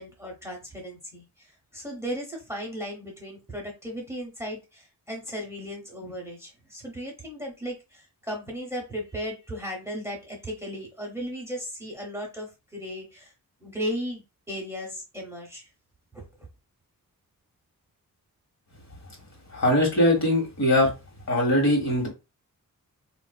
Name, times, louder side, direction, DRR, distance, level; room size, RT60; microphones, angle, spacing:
voice 1, 0.0-13.3 13.6-15.7 16.1-16.3, equal, 10° right, -1 dB, 0.8 m, -36 dB
voice 2, 19.5-20.9 21.3-22.1, left 1 dB, 50° left, 1 dB, 1.3 m, -21 dB
3.9 x 2.5 x 2.2 m, 0.26 s
wide cardioid pair, 160°, 34 cm